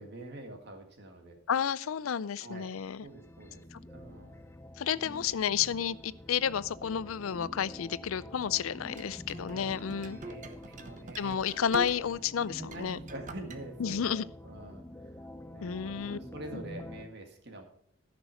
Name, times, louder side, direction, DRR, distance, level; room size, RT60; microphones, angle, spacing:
voice 1, 0.0-1.4 2.4-2.7 3.0-3.6 3.9-4.5 5.1-5.3 9.3-9.8 10.0-11.4 12.5-15.2 15.5-17.6, right 1 dB, 50° right, 1.9 m, -46 dB
voice 2, 1.5-3.0 3.7-3.8 4.8-10.2 11.2-13.0 13.8-14.2 15.6-16.2, left 8 dB, 75° left, 0.4 m, -31 dB
sound 1, 2.4-17.0, left 1 dB, 10° left, 0.5 m, -48 dB
sound 2, 8.9-12.3 12.6-13.6, right 2 dB, 35° right, 0.8 m, -43 dB
14.0 x 6.1 x 5.7 m
head